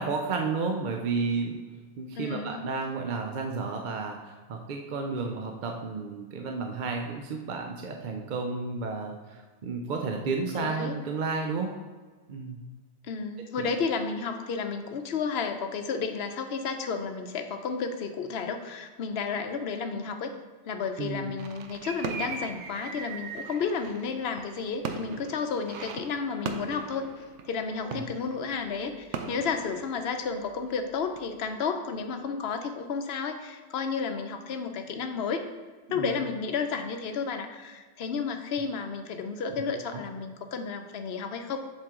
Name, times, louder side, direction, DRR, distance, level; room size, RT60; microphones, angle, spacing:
voice 1, 0.0-1.6 2.0-11.8 12.3-12.6 13.6-13.7 21.0-21.3 27.8-28.0 35.9-36.1 39.9-40.0, right 4 dB, 55° right, 2 dB, 0.6 m, -32 dB
voice 2, 2.2-2.6 10.5-10.9 13.0-20.3 20.7-35.4 35.9-41.6, left 5 dB, 65° left, 6 dB, 0.9 m, -32 dB
sound 1, 21.4-30.8 31.2-31.4, right 5 dB, 90° right, 0.9 m, -40 dB
7.5 x 4.7 x 3.6 m, 1.4 s
omnidirectional pair, 1.2 m